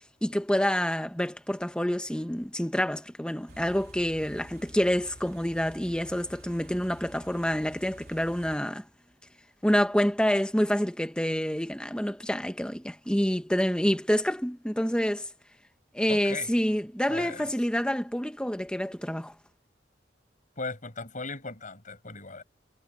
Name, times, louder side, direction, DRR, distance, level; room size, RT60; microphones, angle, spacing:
voice 1, 0.2-8.8 9.6-15.3 15.9-19.3, equal, 5° left, 1.3 m, -27 dB
Car / Idling, 3.5-8.6, right 1 dB, 55° right, 3.5 m, -50 dB
voice 2, 16.1-16.5 17.1-17.5 20.6-22.4, left 3 dB, 45° left, 7.4 m, -37 dB
head